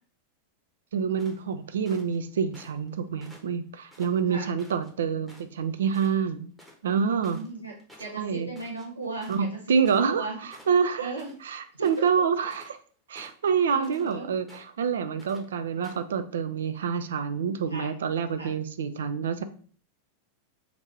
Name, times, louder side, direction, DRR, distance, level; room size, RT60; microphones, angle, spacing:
voice 1, 0.9-6.5 6.8-7.4 8.1-8.5 9.3-11.1 11.4-12.8 13.1-19.4, right 6 dB, 65° right, 10 dB, 0.3 m, -27 dB
sound 1, 1.2-2.2 2.5-2.9 3.2-4.9 5.3-5.6 5.9-6.1 6.4-10.2 10.5-11.4 11.7-12.8 13.1-14.1 14.5-14.9 15.2-15.4 15.8-16.1, equal, ahead, 0.9 m, -53 dB
voice 2, 7.2-7.7 8.0-10.4 11.0-11.3 11.8-11.9 13.7-14.3 17.7-17.9 18.4-18.5, right 3 dB, 85° right, -4 dB, 0.7 m, -36 dB
2.9 x 2.6 x 4.3 m, 0.43 s
figure-of-eight pair, 90°, 0 cm